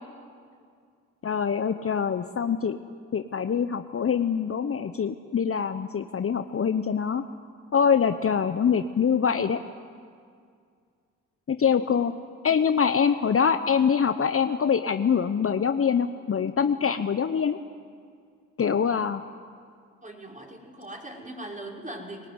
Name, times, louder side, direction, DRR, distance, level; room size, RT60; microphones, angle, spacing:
voice 1, 1.2-2.8 3.1-7.2 7.7-9.6 11.5-12.1 12.4-17.6 18.6-19.2, left 7 dB, 35° left, 9 dB, 1.0 m, -24 dB
voice 2, 20.0-22.3, right 1 dB, 20° right, 0 dB, 5.4 m, -40 dB
22.5 x 18.5 x 9.7 m, 2.2 s
hypercardioid pair, 50°, 38 cm